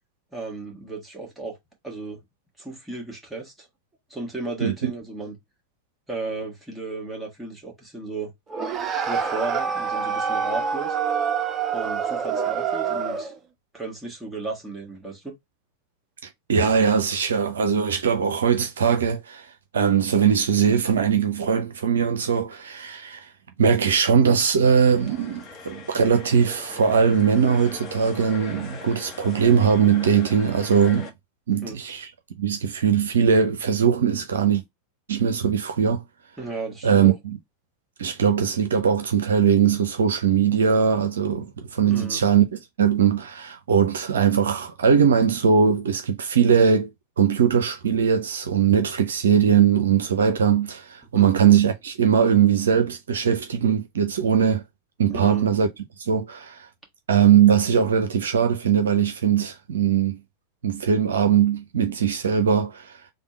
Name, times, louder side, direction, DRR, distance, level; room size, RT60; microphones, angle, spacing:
voice 1, 0.3-1.6 1.8-2.2 2.6-3.7 4.1-5.3 6.1-8.3 9.1-11.0 11.7-13.3 13.7-15.3 31.6-31.8 36.4-37.1 41.9-42.2 51.1-51.3 55.1-55.5, right 3 dB, 5° right, 1.5 m, -34 dB
voice 2, 4.6-4.9 16.5-19.5 19.7-23.3 23.6-31.1 31.5-32.1 32.4-34.6 35.1-36.0 36.8-37.4 38.0-42.5 42.8-46.9 47.2-54.6 55.0-55.7 56.0-56.7 57.1-60.2 60.6-63.1, right 7 dB, 65° right, 0.5 m, -20 dB
sound 1, 8.5-13.4, right 6 dB, 25° right, 0.6 m, -26 dB
sound 2, 24.9-31.1, left 3 dB, 30° left, 1.0 m, -40 dB
3.4 x 2.2 x 4.4 m
figure-of-eight pair, 90°, 0 cm